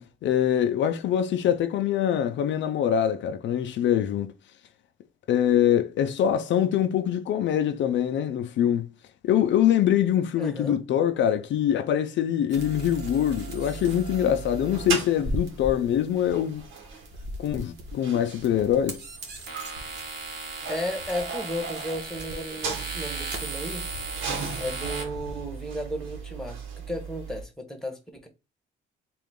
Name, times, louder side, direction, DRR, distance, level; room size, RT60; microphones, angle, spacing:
voice 1, 0.0-4.3 5.3-8.9 9.2-16.6 17.4-19.0, left 10 dB, 70° left, 0.5 m, -24 dB
voice 2, 10.4-10.8 20.7-23.9 24.6-26.6 26.9-28.3, equal, ahead, 1.3 m, -34 dB
sound 1, 12.5-25.0, right 2 dB, 60° right, 1.4 m, -37 dB
sound 2, 12.5-27.4, right 5 dB, 80° right, 1.1 m, -37 dB
3.8 x 2.5 x 3.6 m
cardioid pair, 90°, 20 cm